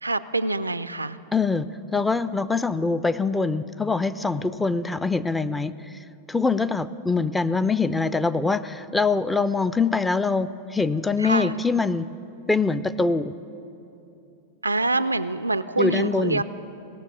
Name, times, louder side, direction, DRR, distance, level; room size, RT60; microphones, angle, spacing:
voice 1, 0.0-1.2 11.2-11.5 14.6-16.4, right 2 dB, 80° right, 13 dB, 0.3 m, -25 dB
voice 2, 1.3-5.7 6.3-12.1 12.5-13.3 15.8-16.4, left 4 dB, 10° left, 14 dB, 0.4 m, -24 dB
17.5 x 6.9 x 9.8 m, 2.8 s
figure-of-eight pair, 90°, 0 cm